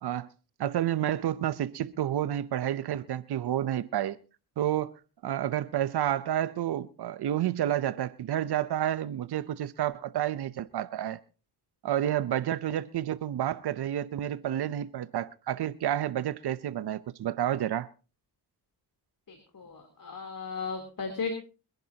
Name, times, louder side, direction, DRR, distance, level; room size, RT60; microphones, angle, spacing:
voice 1, 0.6-4.2 4.6-4.9 5.2-11.2 11.8-17.9, right 11 dB, 75° right, 0.8 m, -30 dB
voice 2, 19.3-21.4, left 4 dB, 55° left, 3.5 m, -36 dB
25.5 x 11.0 x 2.9 m
cardioid pair, 70°, 39 cm